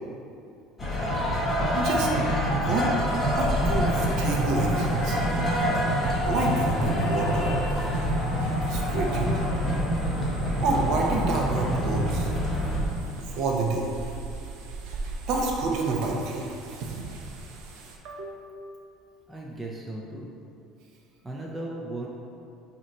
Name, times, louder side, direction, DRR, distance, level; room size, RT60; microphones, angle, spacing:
sound 1, 0.8-12.8, equal, 15° left, 1.0 m, -26 dB
voice 1, 1.8-2.1 2.5-2.9 3.3-5.2 6.2-7.5 8.7-9.3 10.6-12.3 13.3-13.9 15.3-16.6 18.0-18.5, right 3 dB, 55° right, -1 dB, 0.9 m, -28 dB
sound 2, 3.1-18.0, right 3 dB, 90° right, 0.8 m, -40 dB
voice 2, 19.3-20.4 21.2-22.1, right 1 dB, 10° right, -3 dB, 0.5 m, -36 dB
7.8 x 2.9 x 4.3 m, 2.5 s
cardioid pair, 165°, 0 cm